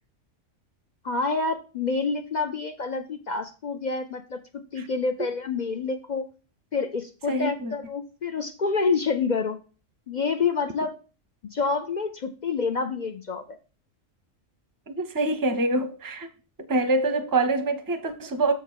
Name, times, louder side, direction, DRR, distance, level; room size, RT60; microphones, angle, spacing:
voice 1, 1.0-4.4 4.7-6.3 6.7-9.6 10.1-10.9 11.5-13.6, left 4 dB, 55° left, 0.5 m, -27 dB
voice 2, 7.3-7.7 14.9-16.3 16.7-18.5, right 2 dB, 20° right, 0.6 m, -25 dB
6.8 x 3.7 x 6.3 m
omnidirectional pair, 1.4 m